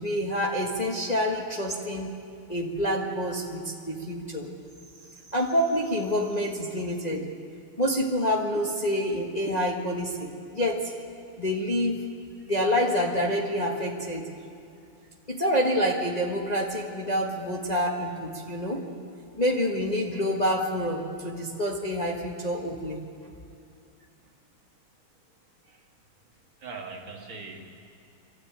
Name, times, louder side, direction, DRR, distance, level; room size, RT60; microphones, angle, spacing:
voice 1, 0.0-2.1 2.5-4.4 5.3-7.2 7.8-10.9 11.4-12.0 12.5-14.2 15.3-18.8 19.4-23.0, equal, 20° left, -1 dB, 1.4 m, -27 dB
voice 2, 26.6-27.6, right 4 dB, 60° right, 1 dB, 2.7 m, -42 dB
24.5 x 13.5 x 9.0 m, 2.5 s
omnidirectional pair, 2.4 m